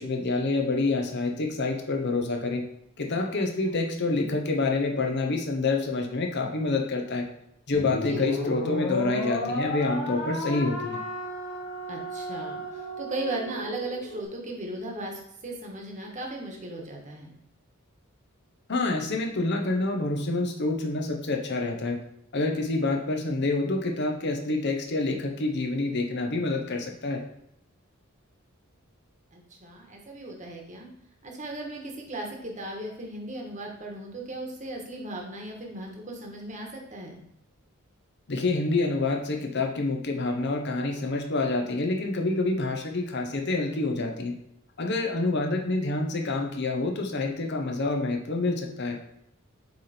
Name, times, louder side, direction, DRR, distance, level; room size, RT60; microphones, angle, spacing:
voice 1, 0.0-2.6 3.0-7.3 7.7-11.0 18.7-22.0 22.3-27.2 38.3-44.3 44.8-49.0, left 2 dB, 55° left, 2 dB, 0.9 m, -27 dB
sound 1, 7.7-14.2, left 1 dB, 75° left, 1.8 m, -33 dB
voice 2, 7.9-8.3 11.9-17.3 29.3-30.9 31.2-37.2, right 1 dB, 35° right, 1 dB, 1.4 m, -37 dB
8.0 x 3.4 x 4.3 m, 0.75 s
head